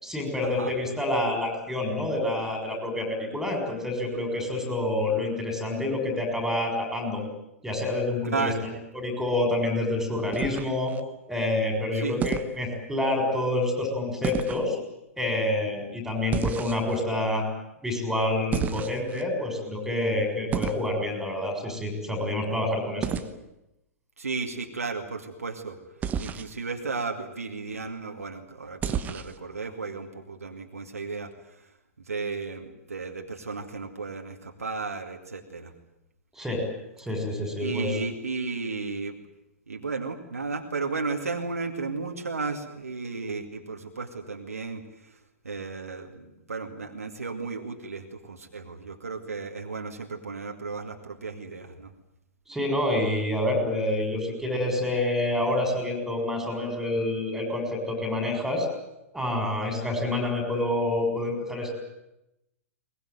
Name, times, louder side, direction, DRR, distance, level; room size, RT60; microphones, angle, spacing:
voice 1, 0.0-7.2 7.6-11.0 11.3-14.8 15.2-17.4 17.8-23.1 36.3-36.6 37.0-37.9 52.5-58.7 59.1-61.8, left 1 dB, 5° right, 4 dB, 6.7 m, -27 dB
voice 2, 8.2-8.7 11.9-12.2 24.2-25.8 26.2-31.6 32.0-35.7 37.6-39.2 39.7-44.8 45.1-45.2 45.4-51.9, right 4 dB, 75° right, 3 dB, 2.4 m, -34 dB
sound 1, 10.3-11.0 12.2-12.5 14.2-14.7 16.3-17.0 18.5-19.2 20.5-20.9 23.0-23.3 26.0-26.5 28.8-29.4, right 8 dB, 20° right, 1.2 m, -30 dB
22.0 x 20.5 x 9.3 m, 0.89 s
figure-of-eight pair, 105°, 8 cm